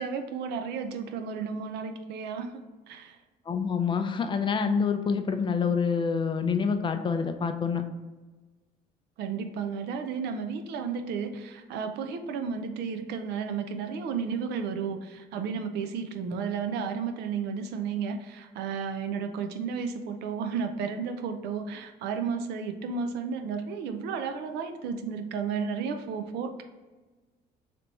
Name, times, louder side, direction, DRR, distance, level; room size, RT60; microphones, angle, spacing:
voice 1, 0.0-3.2 9.2-26.6, right 6 dB, 80° right, 6 dB, 0.5 m, -33 dB
voice 2, 3.5-7.8, left 5 dB, 30° left, 7 dB, 0.4 m, -27 dB
3.4 x 2.9 x 4.0 m, 1.3 s
cardioid pair, 110°, 17 cm